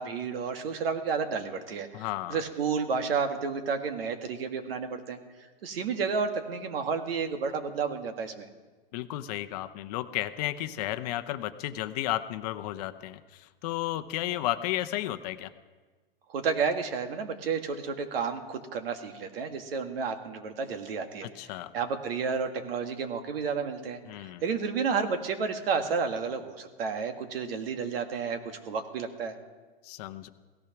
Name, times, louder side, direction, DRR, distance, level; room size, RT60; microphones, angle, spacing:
voice 1, 0.0-5.2 5.6-8.5 16.3-29.4, right 5 dB, 75° right, 6 dB, 1.9 m, -31 dB
voice 2, 1.9-2.4 8.9-15.5 21.2-21.7 24.1-24.4 29.8-30.3, left 14 dB, 40° left, 11 dB, 0.8 m, -33 dB
17.0 x 14.0 x 5.9 m, 1.4 s
hypercardioid pair, 145°, 29 cm